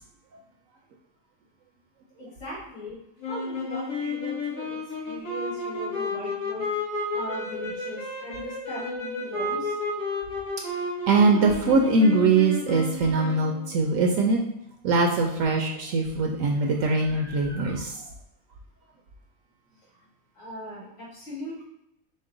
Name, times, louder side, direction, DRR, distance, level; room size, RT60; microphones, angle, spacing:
voice 1, 2.2-3.0 3.3-9.8 20.3-21.6, equal, 55° left, -6 dB, 2.0 m, -39 dB
sound 1, 3.2-13.7, left 2 dB, 80° left, 1.6 m, -32 dB
voice 2, 11.1-14.4 14.8-18.0, right 3 dB, 75° right, 1 dB, 1.0 m, -22 dB
5.2 x 2.1 x 3.8 m, 0.82 s
omnidirectional pair, 1.4 m